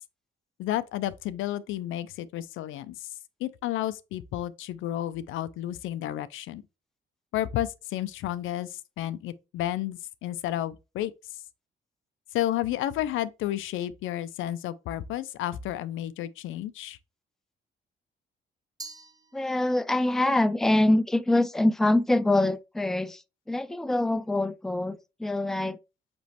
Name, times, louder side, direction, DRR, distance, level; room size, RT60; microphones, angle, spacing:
voice 1, 0.6-2.9 3.4-6.6 7.3-11.1 12.3-17.0, left 13 dB, 85° left, 0.5 m, -31 dB
Glass, 18.8-20.0, right 3 dB, 20° right, 0.8 m, -46 dB
voice 2, 19.3-23.2 23.5-25.8, left 1 dB, ahead, 0.4 m, -24 dB
6.0 x 3.0 x 2.8 m
cardioid pair, 90°, 20 cm